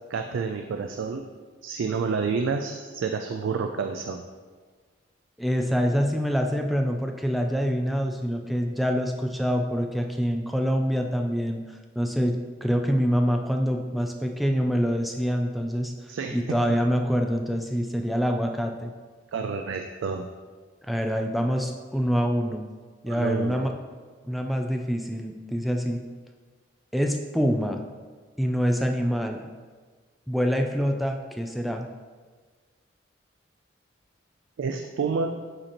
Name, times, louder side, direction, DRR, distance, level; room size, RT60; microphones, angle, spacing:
voice 1, 0.1-1.3 1.6-4.2 16.1-16.6 19.3-20.3 23.1-23.7 34.6-35.4, right 5 dB, 90° right, 5 dB, 0.4 m, -29 dB
voice 2, 5.4-11.6 12.0-15.9 16.3-18.9 20.8-22.7 23.0-23.7 24.2-26.0 26.9-27.8 28.4-29.5 30.3-31.9, equal, ahead, 3 dB, 0.3 m, -25 dB
7.8 x 2.9 x 4.2 m, 1.5 s
head